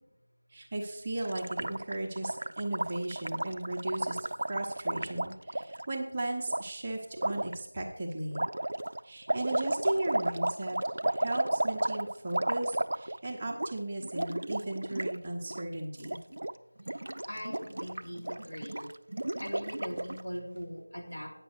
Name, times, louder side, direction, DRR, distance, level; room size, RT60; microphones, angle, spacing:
voice 1, 0.5-8.4 9.0-16.2, right 1 dB, 15° right, -1 dB, 0.8 m, -36 dB
Gurgling, 1.2-5.9 6.5-6.6 7.2-7.6 8.3-13.3 13.5-13.7 14.0-15.2 15.4-15.6 16.0-16.5 16.8-20.2, right 1 dB, 50° right, 0.4 m, -33 dB
voice 2, 17.2-18.9 19.4-21.3, equal, 75° left, -2 dB, 3.4 m, -40 dB
9.0 x 5.9 x 6.4 m, 0.82 s
figure-of-eight pair, 175°, 0 cm